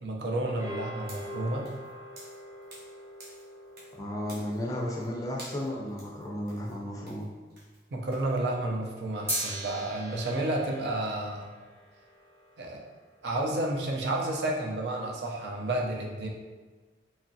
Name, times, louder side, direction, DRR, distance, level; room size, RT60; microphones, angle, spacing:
voice 1, 0.0-1.7 7.9-11.5 12.6-12.8 13.2-16.3, right 1 dB, 75° right, -1 dB, 0.5 m, -31 dB
sound 1, 0.6-7.1 9.3-13.7, right 1 dB, 15° right, 0.7 m, -42 dB
sound 2, 1.0-2.9 3.2-4.0 4.2-5.1 5.4-8.4, right 1 dB, 55° right, 0.9 m, -50 dB
voice 2, 4.0-7.2, left 1 dB, 20° left, -3 dB, 0.4 m, -34 dB
2.9 x 2.4 x 2.6 m, 1.4 s
head